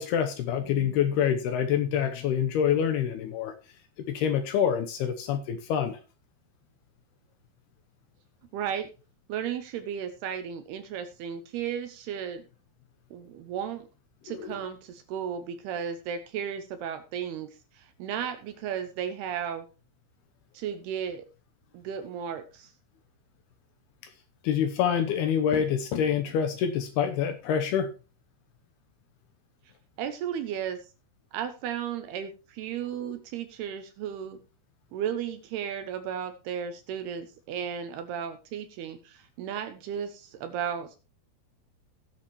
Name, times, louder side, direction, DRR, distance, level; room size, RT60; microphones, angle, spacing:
voice 1, 0.0-3.5 4.1-6.0 14.3-14.5 24.4-27.9 33.1-33.2, left 8 dB, 75° left, 8 dB, 2.6 m, -26 dB
voice 2, 8.5-8.9 9.3-12.5 13.1-13.9 14.2-17.5 17.7-19.7 20.5-21.3 21.7-22.7 30.0-30.8 31.3-34.4 34.9-41.0, right 8 dB, 75° right, 9 dB, 2.5 m, -34 dB
18.0 x 7.2 x 3.0 m, 0.32 s
omnidirectional pair, 5.3 m